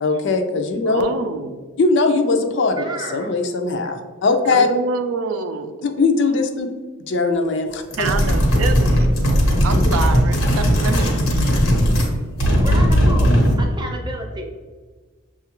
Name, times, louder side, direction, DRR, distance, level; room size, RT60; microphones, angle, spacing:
voice 1, 0.0-1.0 1.8-4.7 5.8-6.7 7.1-8.1 9.7-9.8, left 3 dB, 60° left, 5 dB, 0.4 m, -20 dB
voice 2, 0.8-1.6 4.4-5.7 8.0-9.1 9.6-11.1, right 4 dB, 80° right, 8 dB, 0.4 m, -26 dB
voice 3, 2.8-3.3 8.6-8.7 12.5-14.4, right 1 dB, 20° right, 1 dB, 0.6 m, -32 dB
sound 1, 7.9-12.1 12.4-13.7, equal, 85° left, 1.0 m, -17 dB
6.6 x 2.4 x 2.9 m, 1.4 s
head